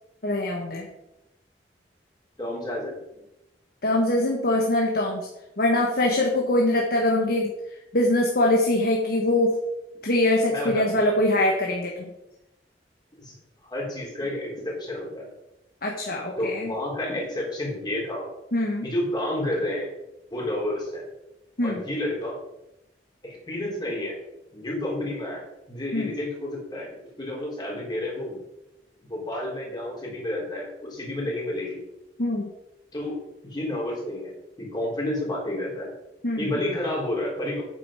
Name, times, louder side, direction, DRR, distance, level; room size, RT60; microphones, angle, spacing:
voice 1, 0.2-0.9 3.8-5.3 5.6-7.5 7.9-9.6 10.0-12.1 15.8-16.7 18.5-18.9 21.6-21.8 25.9-26.1 32.2-32.5 36.2-36.5, left 1 dB, 60° left, 0 dB, 1.4 m, -23 dB
voice 2, 2.4-3.0 10.5-11.1 13.2-13.3 13.6-15.3 16.4-18.3 18.8-19.9 20.3-21.0 21.6-22.4 23.2-24.2 24.5-28.4 29.0-31.8 32.9-33.2 33.4-35.9 36.4-37.6, left 1 dB, 25° left, -3 dB, 3.5 m, -30 dB
9.0 x 7.5 x 5.0 m, 0.92 s
head